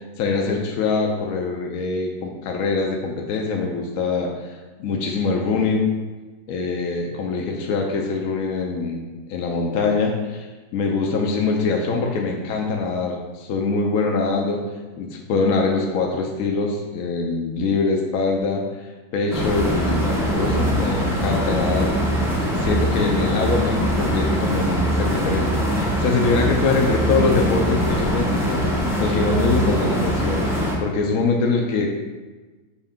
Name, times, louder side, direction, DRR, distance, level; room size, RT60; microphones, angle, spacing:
voice 1, 0.0-5.9 6.5-10.5 10.7-14.6 15.0-18.6 19.1-22.0 22.4-28.6 29.0-30.4 30.8-31.9, left 4 dB, 70° left, 0 dB, 0.9 m, -23 dB
sound 1, 19.3-30.8, equal, 5° right, 0.4 m, -22 dB
5.5 x 2.6 x 3.6 m, 1.2 s
omnidirectional pair, 1.7 m